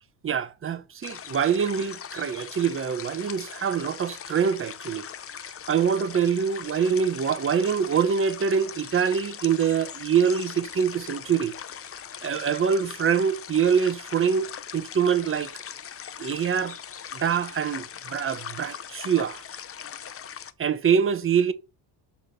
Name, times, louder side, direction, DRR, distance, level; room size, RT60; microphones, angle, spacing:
voice 1, 0.2-5.1 5.7-11.5 12.2-15.5 16.2-16.8 17.1-19.4 20.6-21.5, right 7 dB, 30° right, 0.9 m, -24 dB
sound 1, 1.0-20.5, left 8 dB, 30° left, 0.7 m, -40 dB
6.2 x 5.9 x 6.6 m
cardioid pair, 130°, 46 cm